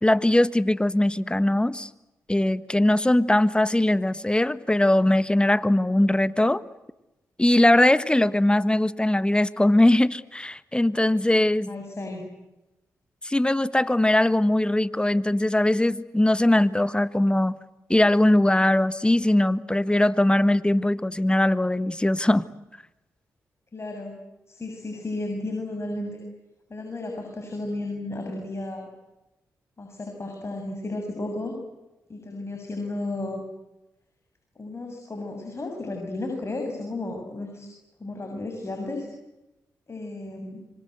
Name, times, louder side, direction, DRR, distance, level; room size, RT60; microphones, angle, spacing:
voice 1, 0.0-1.9 2.3-6.6 7.4-11.7 13.2-17.5 17.9-22.4, left 1 dB, 15° left, 15 dB, 1.5 m, -21 dB
voice 2, 11.7-12.3 23.7-24.2 24.5-26.2 26.7-28.9 29.8-31.5 32.1-33.4 34.6-37.7 38.0-39.1 39.9-40.6, left 2 dB, 40° left, 3 dB, 7.3 m, -33 dB
26.5 x 25.0 x 8.1 m, 0.96 s
supercardioid pair, 45°, 7 cm